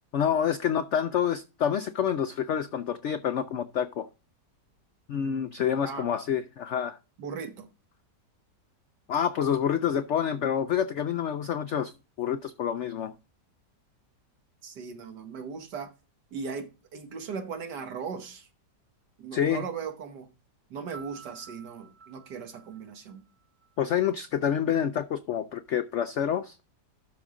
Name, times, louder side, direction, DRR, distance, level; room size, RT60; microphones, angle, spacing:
voice 1, 0.1-4.1 5.1-7.0 9.1-11.9 12.2-13.1 19.3-19.6 23.8-26.6, left 8 dB, 80° left, 0.6 m, -27 dB
voice 2, 7.2-7.7 14.6-15.9 16.3-18.5 19.2-20.3 20.7-23.2, right 5 dB, 75° right, 1.7 m, -38 dB
Piano, 20.9-23.7, right 6 dB, 45° right, 2.0 m, -51 dB
12.0 x 5.1 x 3.7 m
omnidirectional pair, 1.8 m